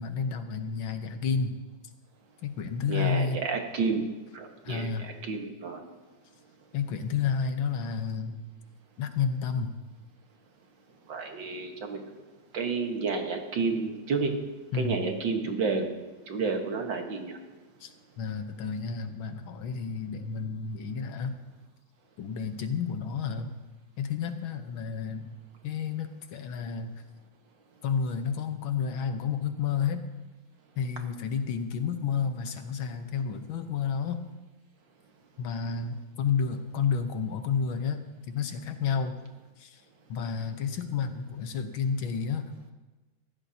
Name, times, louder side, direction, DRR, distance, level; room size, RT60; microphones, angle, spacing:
voice 1, 0.0-1.6 2.4-3.4 4.7-5.1 6.7-8.4 9.0-9.7 14.7-15.0 17.8-21.4 22.2-23.5 24.0-25.3 25.6-26.9 27.8-30.0 30.8-34.2 35.4-39.1 39.6-39.8 40.1-42.5, left 6 dB, 80° left, 7 dB, 1.8 m, -31 dB
voice 2, 2.9-4.0 4.3-5.8 11.1-12.0 12.5-14.3 14.7-15.9 16.3-17.3, right 4 dB, 70° right, 3 dB, 2.1 m, -30 dB
19.5 x 15.0 x 2.8 m, 1.2 s
omnidirectional pair, 2.2 m